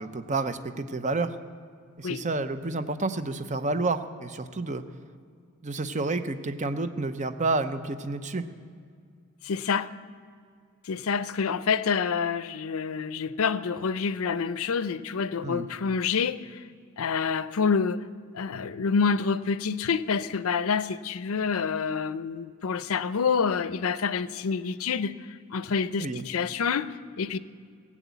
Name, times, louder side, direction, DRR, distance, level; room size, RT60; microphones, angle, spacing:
voice 1, 0.0-1.4 2.0-4.8 5.6-8.4 15.4-15.7 26.0-26.2, right 3 dB, 35° right, 0.6 m, -29 dB
voice 2, 9.4-9.9 10.8-16.6 17.0-18.0 18.3-27.4, left 5 dB, 70° left, 0.5 m, -27 dB
17.5 x 7.3 x 8.2 m
head